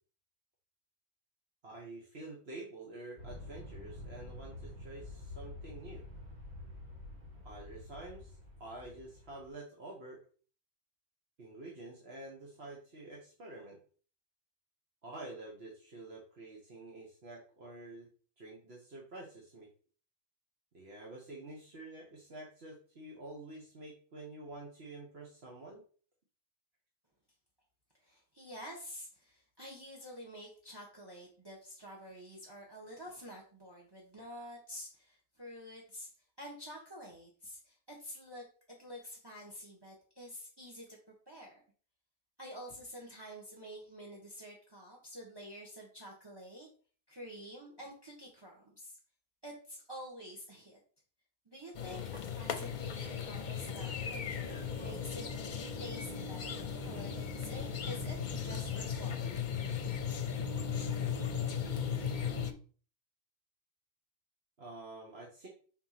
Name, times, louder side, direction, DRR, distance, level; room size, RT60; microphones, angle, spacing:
voice 1, 1.6-6.0 7.4-10.2 11.4-13.8 15.0-18.1 18.4-19.7 20.7-25.8 64.6-65.5, right 2 dB, 75° right, -2 dB, 1.5 m, -48 dB
Aircraft, 3.2-9.5, left 2 dB, 45° right, 1.6 m, -48 dB
voice 2, 28.0-36.1 36.4-41.0 41.3-41.6 42.4-46.7 47.1-49.0 49.4-50.8 51.4-59.4, equal, 25° right, -1 dB, 1.4 m, -49 dB
sound 1, 51.7-62.5, left 7 dB, 50° left, 0.8 m, -37 dB
4.4 x 4.4 x 5.8 m, 0.41 s
omnidirectional pair, 1.1 m